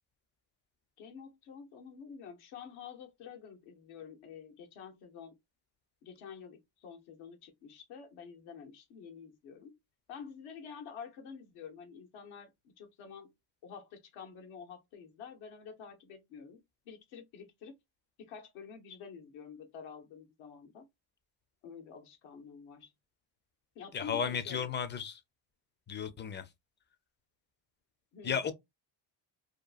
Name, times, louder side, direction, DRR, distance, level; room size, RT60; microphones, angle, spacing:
voice 1, 1.0-5.4 6.0-9.7 10.1-13.3 13.6-16.6 16.9-17.7 18.3-20.9 21.6-22.9 23.7-24.7 28.1-28.5, left 6 dB, 75° left, 0.9 m, -49 dB
voice 2, 23.9-25.2 25.9-26.4 28.2-28.5, left 7 dB, 25° left, 0.4 m, -34 dB
2.9 x 2.3 x 2.3 m
supercardioid pair, 80°, 49 cm